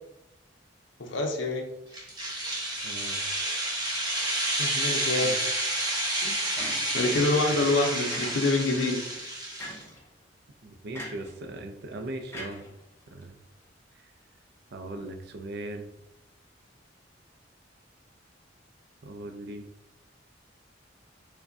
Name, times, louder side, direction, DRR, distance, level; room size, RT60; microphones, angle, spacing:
voice 1, 1.0-1.7 4.6-5.3 6.2-6.4 6.9-9.0, left 2 dB, 70° left, 2 dB, 0.5 m, -26 dB
sound 1, 1.9-9.8, right 1 dB, 20° right, 0.8 m, -30 dB
voice 2, 2.8-3.2 5.2-5.5 10.6-12.6 13.1-13.4 13.9-14.1 14.7-15.9 19.0-19.7, right 2 dB, 55° right, 7 dB, 0.4 m, -39 dB
sound 2, 6.6-7.2 8.1-8.8 9.6-10.0 10.9-11.4 12.3-13.2, left 1 dB, 15° left, 0.6 m, -41 dB
4.7 x 2.2 x 2.6 m, 0.84 s
head